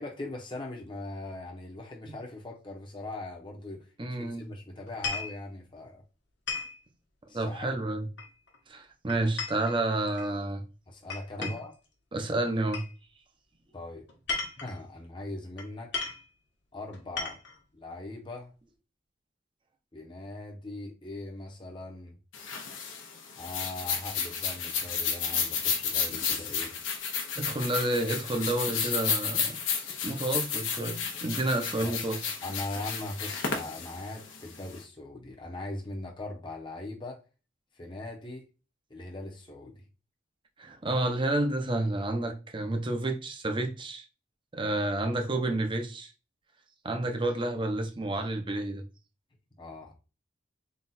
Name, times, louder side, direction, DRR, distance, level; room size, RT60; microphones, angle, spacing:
voice 1, 0.0-3.9 4.2-6.0 7.3-7.8 10.9-11.8 13.7-14.0 14.6-15.9 16.7-17.4 17.7-18.5 19.9-22.2 23.4-26.8 31.8-32.1 32.4-37.2 37.7-38.5 38.9-39.9 49.6-49.9, left 2 dB, 25° left, 0.8 m, -40 dB
voice 2, 4.0-4.5 7.3-8.1 8.7-10.6 11.4-11.5 12.1-12.8 27.3-29.6 30.0-32.2 40.6-44.0 44.5-46.1 46.8-48.8, right 2 dB, 25° right, 0.7 m, -30 dB
sound 1, 4.9-5.4 6.5-6.8 8.2-8.6 9.1-10.3 11.1-11.7 12.7-12.9 14.1-14.8 15.6-15.7 15.9-16.2 16.9-17.6, left 4 dB, 65° left, 1.2 m, -35 dB
sound 2, 22.3-34.8, left 6 dB, 85° left, 0.9 m, -32 dB
3.9 x 2.4 x 4.1 m
head